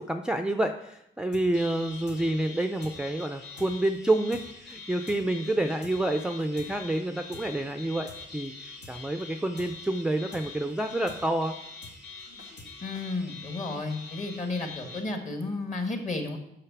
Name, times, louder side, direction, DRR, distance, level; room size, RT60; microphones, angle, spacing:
voice 1, 0.0-11.6, right 1 dB, 5° right, 7 dB, 0.4 m, -28 dB
sound 1, 1.3-1.4 1.7-1.8 2.1-2.2 2.4-2.5 2.8-2.9 3.2-3.3 3.6-3.7 3.9-4.0 4.3-4.4 4.7-4.8 5.1-5.2 5.4-5.5 5.8-5.9 6.2-6.7 6.9-7.0 7.3-7.4 7.7-7.8 8.1-8.2 8.4-8.5 8.8-8.9 9.2-9.3 9.6-9.7 9.9-10.0 10.3-10.4 10.7-10.8 11.1-11.2 11.4-11.5 11.8-11.9 12.2-12.7 12.9-13.0, left 2 dB, 80° left, 2.1 m, -48 dB
sound 2, 1.5-15.0, left 4 dB, 60° left, 2.9 m, -45 dB
voice 2, 12.8-16.4, left 3 dB, 35° left, 4 dB, 1.6 m, -32 dB
6.6 x 5.7 x 5.9 m, 0.81 s
cardioid pair, 90°, 20 cm